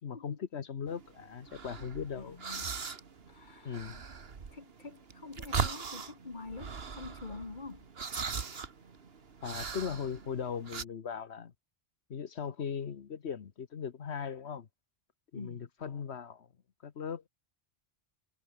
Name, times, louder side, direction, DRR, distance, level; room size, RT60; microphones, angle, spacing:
voice 1, 0.0-2.4 3.6-4.0 9.4-11.5 12.1-14.7 15.3-16.5 16.8-17.3, left 7 dB, 80° left, 1.4 m, -38 dB
sound 1, 0.9-10.8, right 5 dB, 65° right, 1.8 m, -40 dB
voice 2, 2.1-2.8 3.3-4.0 4.5-7.9 15.3-15.7, left 3 dB, 45° left, 2.3 m, -46 dB
omnidirectional pair, 1.1 m